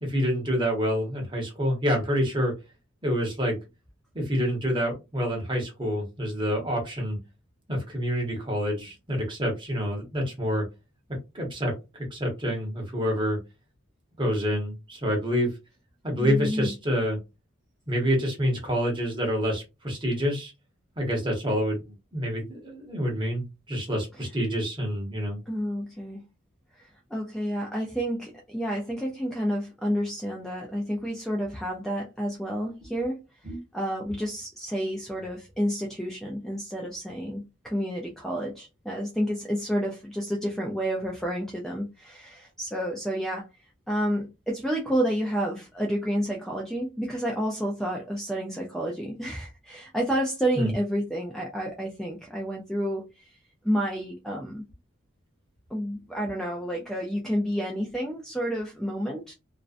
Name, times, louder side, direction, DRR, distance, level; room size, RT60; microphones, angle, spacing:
voice 1, 0.0-2.5 3.0-3.6 4.1-7.2 7.7-10.6 11.3-13.4 14.2-15.5 16.0-17.2 17.9-20.5 21.0-25.4 33.4-33.6 50.6-50.7, equal, 25° right, 0.9 m, -27 dB
voice 2, 16.2-16.7 24.1-24.3 25.5-26.2 26.7-33.2 33.7-43.5 43.9-53.4 53.6-54.7 55.7-59.3, equal, ahead, 0.3 m, -30 dB
2.5 x 2.1 x 2.4 m
head